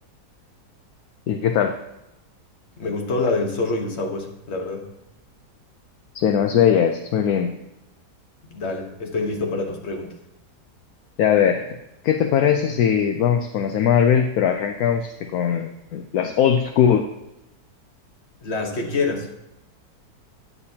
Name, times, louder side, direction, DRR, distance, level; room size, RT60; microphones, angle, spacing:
voice 1, 1.3-1.7 6.1-7.6 11.2-11.8 12.0-17.0, left 8 dB, 70° left, 5 dB, 1.1 m, -20 dB
voice 2, 2.8-4.9 8.5-10.1 18.4-19.3, left 3 dB, 45° left, 2 dB, 1.5 m, -26 dB
9.9 x 9.6 x 2.8 m, 0.89 s
omnidirectional pair, 1.7 m